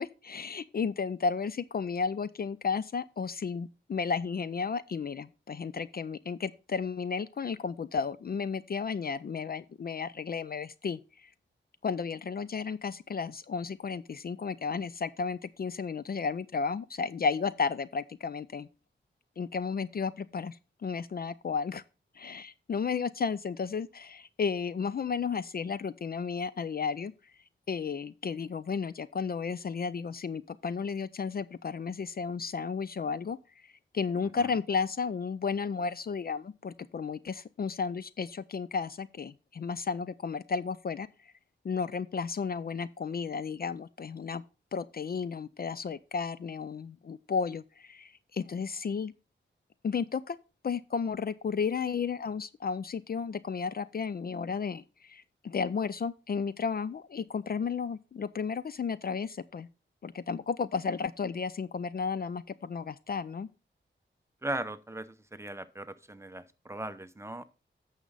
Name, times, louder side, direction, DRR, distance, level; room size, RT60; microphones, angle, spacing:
voice 1, 0.0-11.3 11.8-18.7 19.4-21.8 22.1-27.3 27.7-41.3 41.6-44.4 44.7-49.1 49.8-50.4 50.6-59.7 60.0-63.5, left 5 dB, 50° left, 0.4 m, -33 dB
voice 2, 64.4-67.4, right 1 dB, 15° right, 0.7 m, -38 dB
9.3 x 6.5 x 3.9 m
wide cardioid pair, 85°, 20 cm